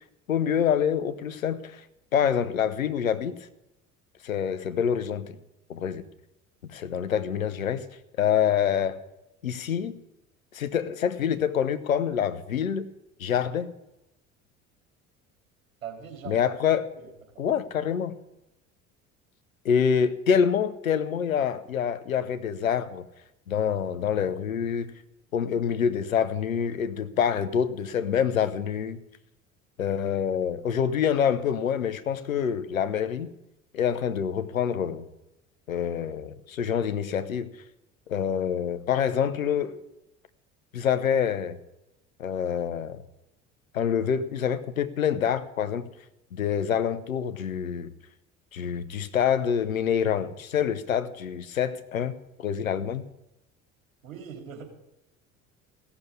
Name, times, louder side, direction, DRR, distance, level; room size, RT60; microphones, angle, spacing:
voice 1, 0.3-1.8 2.1-3.4 4.2-5.4 5.7-6.0 6.6-7.9 8.2-9.0 9.4-10.0 10.5-12.9 13.2-13.7 16.3-16.9 17.4-18.2 19.6-23.0 23.5-24.9 25.3-29.0 29.8-33.3 33.7-35.0 35.7-37.5 38.1-39.8 40.7-41.6 42.2-43.0 43.7-45.9 46.3-47.9 48.5-53.0, left 8 dB, 85° left, 0.9 m, -26 dB
voice 2, 15.8-16.6 17.0-17.6 54.0-54.6, right 7 dB, 80° right, 3.2 m, -41 dB
16.0 x 7.1 x 9.5 m
figure-of-eight pair, 65°, 40 cm